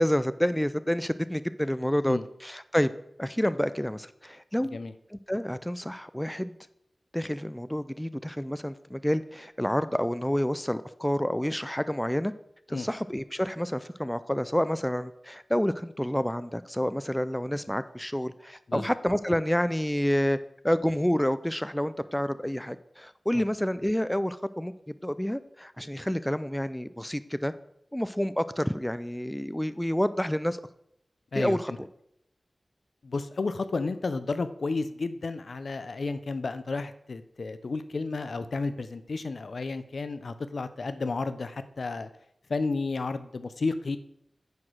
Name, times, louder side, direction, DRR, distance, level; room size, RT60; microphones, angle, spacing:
voice 1, 0.0-2.2 2.4-2.9 3.2-4.8 5.3-6.6 7.1-12.3 12.7-20.4 20.6-27.5 27.9-30.6 31.4-31.9, equal, 5° left, 14 dB, 0.4 m, -28 dB
voice 2, 31.3-31.8 33.0-42.1 42.5-44.0, left 3 dB, 80° left, 11 dB, 0.6 m, -32 dB
9.5 x 4.9 x 6.2 m, 0.75 s
wide cardioid pair, 70°, 0 cm